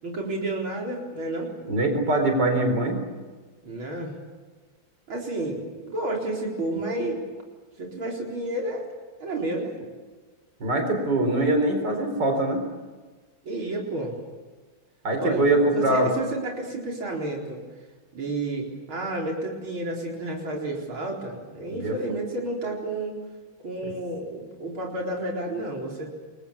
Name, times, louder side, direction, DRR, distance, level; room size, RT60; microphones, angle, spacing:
voice 1, 0.0-1.5 3.6-4.1 5.1-7.2 7.8-8.9 9.2-9.8 13.4-14.1 15.2-17.6 18.1-23.2 23.6-26.1, right 2 dB, 85° right, -1 dB, 5.0 m, -31 dB
voice 2, 1.7-3.0 10.6-12.6 15.0-16.1 21.7-21.9, right 1 dB, 55° right, 4 dB, 5.0 m, -23 dB
29.0 x 22.5 x 7.2 m, 1.4 s
omnidirectional pair, 2.2 m